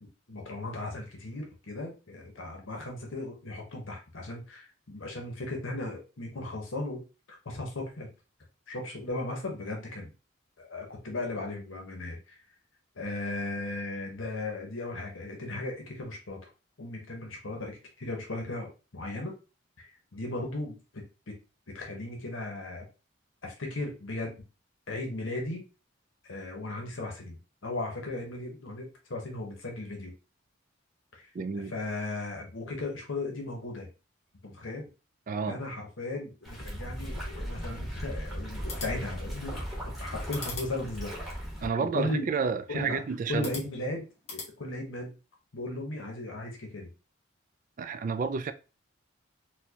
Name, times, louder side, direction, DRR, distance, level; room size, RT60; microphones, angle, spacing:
voice 1, 0.0-7.0 7.4-8.1 8.7-10.1 10.6-12.4 13.0-16.5 16.8-19.3 19.8-21.3 21.7-22.8 23.4-24.3 24.9-25.6 26.2-30.1 31.1-31.3 31.7-33.9 34.4-34.8 35.5-39.7 40.0-41.1 41.8-42.3 42.7-43.0 43.3-45.1 45.5-46.9, left 2 dB, 85° left, 1.0 m, -36 dB
voice 2, 31.3-31.7 35.3-35.6 41.6-43.5 47.8-48.5, right 5 dB, 45° right, 0.3 m, -30 dB
sound 1, 36.4-41.7, equal, ahead, 1.0 m, -37 dB
sound 2, 38.5-44.5, left 3 dB, 35° left, 1.2 m, -46 dB
4.3 x 2.2 x 2.8 m
head